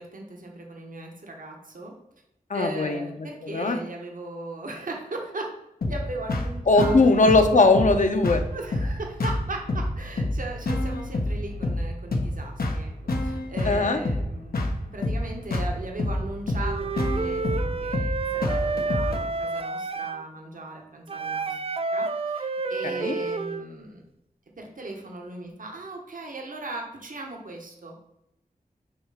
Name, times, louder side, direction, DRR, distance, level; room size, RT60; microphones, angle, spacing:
voice 1, 0.0-1.9 2.5-5.5 5.9-6.9 8.5-12.9 13.2-21.6 21.9-24.0 24.6-28.0, right 2 dB, 65° right, 1 dB, 1.1 m, -38 dB
voice 2, 2.5-3.8 6.7-8.4 13.6-14.0 22.8-23.2, left 3 dB, 55° left, 6 dB, 0.8 m, -20 dB
sound 1, 5.8-19.2, left 1 dB, 85° left, 0.9 m, -28 dB
Wind instrument woodwind instrument, 16.6-20.2 21.1-23.7, right 4 dB, 40° right, 0.4 m, -29 dB
6.1 x 3.2 x 4.9 m, 0.86 s
wide cardioid pair, 50°, 15 cm